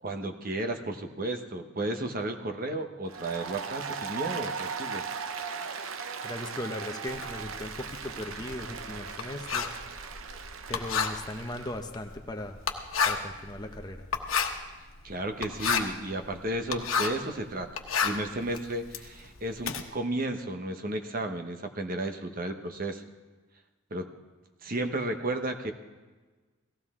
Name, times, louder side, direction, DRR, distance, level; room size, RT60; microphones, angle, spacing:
voice 1, 0.0-5.0 15.0-17.7 18.0-23.0 23.9-24.1 24.6-25.7, right 1 dB, 45° right, 5 dB, 1.0 m, -33 dB
Applause, 3.1-11.8, right 6 dB, 85° right, 0.7 m, -38 dB
voice 2, 6.2-9.7 10.7-12.6 13.1-14.1, left 1 dB, 20° left, 5 dB, 0.8 m, -38 dB
Writing, 7.1-17.3 17.6-19.8, left 6 dB, 85° left, 1.2 m, -31 dB
18.0 x 15.0 x 3.7 m, 1.3 s
head